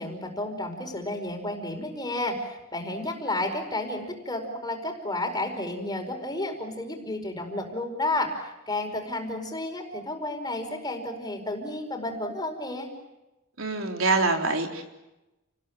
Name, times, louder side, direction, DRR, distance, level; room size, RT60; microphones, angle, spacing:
voice 1, 0.0-12.9, left 1 dB, 20° left, 3 dB, 5.0 m, -32 dB
voice 2, 13.6-14.8, right 3 dB, 75° right, 3 dB, 3.9 m, -25 dB
29.5 x 20.5 x 8.8 m, 0.99 s
head